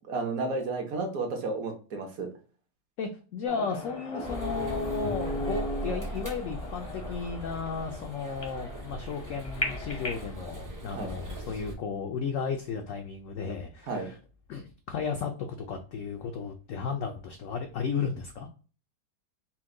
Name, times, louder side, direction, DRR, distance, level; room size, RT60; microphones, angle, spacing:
voice 1, 0.1-2.3 10.9-11.1 13.9-14.1, right 3 dB, 60° right, 3 dB, 1.3 m, -32 dB
voice 2, 3.0-14.2 14.5-18.5, left 5 dB, 70° left, 4 dB, 0.7 m, -34 dB
sound 1, 3.5-10.3, left 2 dB, 30° left, 0.6 m, -37 dB
sound 2, 4.2-11.7, right 1 dB, 25° right, 0.4 m, -39 dB
4.3 x 2.2 x 3.7 m, 0.37 s
omnidirectional pair, 1.8 m